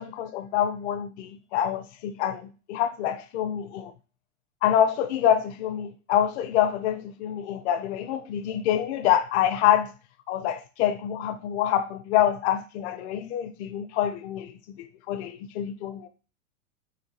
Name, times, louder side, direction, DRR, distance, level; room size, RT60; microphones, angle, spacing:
voice 1, 0.0-3.9 4.6-9.9 10.3-16.1, left 10 dB, 50° left, 0.7 m, -26 dB
4.4 x 2.8 x 4.0 m
hypercardioid pair, 125°, 42 cm